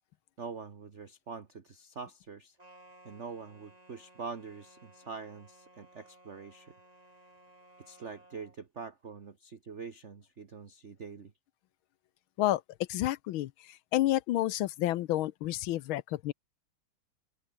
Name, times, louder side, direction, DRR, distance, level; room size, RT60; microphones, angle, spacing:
voice 1, 0.4-2.6 3.0-6.7 7.8-11.3, right 5 dB, 35° right, 1.5 m, -44 dB
sound 1, 2.6-8.6, right 1 dB, 15° right, 4.4 m, -59 dB
voice 2, 12.9-16.3, left 14 dB, 75° left, 1.4 m, -30 dB
open air
omnidirectional pair, 2.4 m